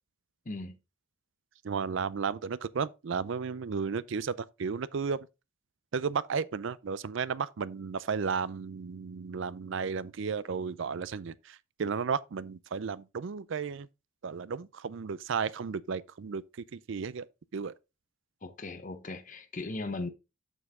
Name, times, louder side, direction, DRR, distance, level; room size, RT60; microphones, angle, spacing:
voice 1, 0.4-0.8 18.4-20.1, left 2 dB, 35° left, 0.8 m, -38 dB
voice 2, 1.6-5.3 5.9-13.9 14.2-17.3 17.5-17.7, right 5 dB, 55° right, 0.4 m, -34 dB
7.0 x 6.5 x 3.6 m
head